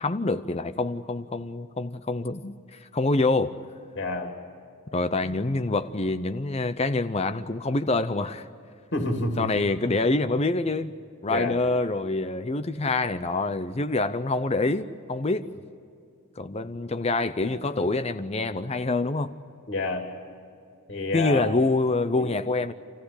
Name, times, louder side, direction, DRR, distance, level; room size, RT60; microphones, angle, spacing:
voice 1, 0.0-3.6 4.9-8.5 9.4-10.9 11.2-15.5 16.4-19.3 21.1-22.7, left 2 dB, 30° left, 11 dB, 0.6 m, -26 dB
voice 2, 3.9-4.3 8.9-9.5 11.3-11.6 19.7-20.0 20.9-21.5 22.1-22.3, left 2 dB, 60° left, 3 dB, 2.7 m, -28 dB
27.5 x 15.0 x 9.9 m, 2.5 s
head